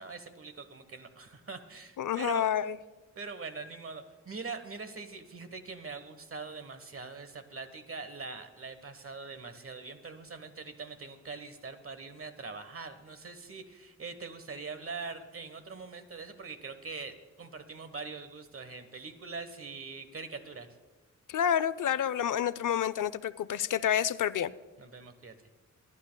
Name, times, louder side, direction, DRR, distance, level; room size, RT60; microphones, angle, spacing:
voice 1, 0.0-2.5 3.2-20.7 24.8-25.3, right 4 dB, 45° right, 1.2 m, -43 dB
voice 2, 2.0-2.8 21.3-24.5, left 9 dB, 90° left, 0.5 m, -29 dB
28.0 x 11.0 x 2.3 m
wide cardioid pair, 120°, 31 cm